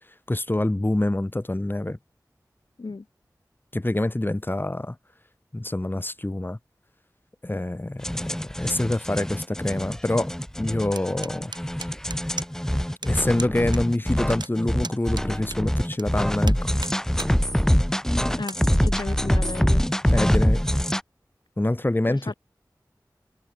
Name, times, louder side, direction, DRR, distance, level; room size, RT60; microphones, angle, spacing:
voice 1, 0.3-2.0 3.7-5.0 5.5-6.6 7.4-11.5 13.0-16.7 20.1-20.6 21.6-22.3, left 1 dB, 30° left, 1.9 m, -26 dB
sound 1, 8.0-21.0, equal, 5° left, 1.9 m, -24 dB
sound 2, 11.0-12.7 13.0-13.1 13.4-13.8 14.1-16.0 16.4-17.3 17.8-17.9 18.4-18.6, right 3 dB, 90° right, 4.0 m, -37 dB
voice 2, 18.4-19.8 22.1-22.3, left 3 dB, 85° left, 3.3 m, -34 dB
wide cardioid pair, 40°, 7 cm